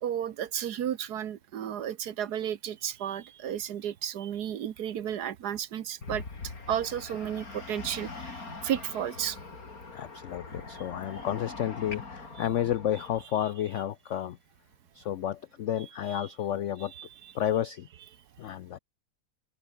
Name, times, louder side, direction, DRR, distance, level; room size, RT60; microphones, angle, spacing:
voice 1, 0.0-6.2 6.7-9.4 16.1-16.3 17.0-17.1, right 10 dB, 65° right, 1.5 m, -33 dB
sound 1, 6.0-13.2, left 3 dB, 50° left, 3.8 m, -42 dB
voice 2, 9.9-14.4 14.9-16.9 17.3-17.9 18.4-18.8, left 11 dB, 85° left, 0.6 m, -31 dB
open air
omnidirectional pair, 1.9 m